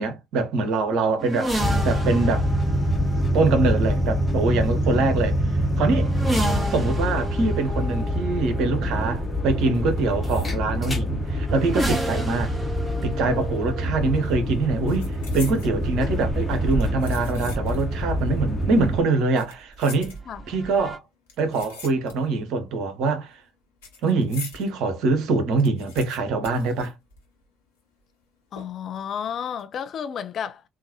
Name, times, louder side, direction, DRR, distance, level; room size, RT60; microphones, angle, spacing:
voice 1, 0.0-2.5 3.3-6.1 6.7-12.5 13.0-20.2 20.5-21.0 21.4-23.4 24.0-26.9, right 3 dB, 60° right, 0.9 m, -24 dB
sound 1, 1.2-19.0 20.0-21.0, right 1 dB, 15° right, 2.1 m, -33 dB
sound 2, 1.6-19.0, equal, 25° left, 1.2 m, -25 dB
voice 2, 4.8-5.1 20.3-20.5 28.5-30.6, left 8 dB, 50° left, 0.5 m, -32 dB
sound 3, 13.8-14.1 14.4-15.8 16.5-17.9 18.2-18.3 19.2-20.6 21.3-22.5 22.7-24.7 25.1-25.2 25.4-27.5 27.8-27.9 28.6-29.0 29.4-29.6, left 4 dB, 75° left, 1.1 m, -43 dB
3.8 x 2.5 x 2.9 m
figure-of-eight pair, 50°, 0 cm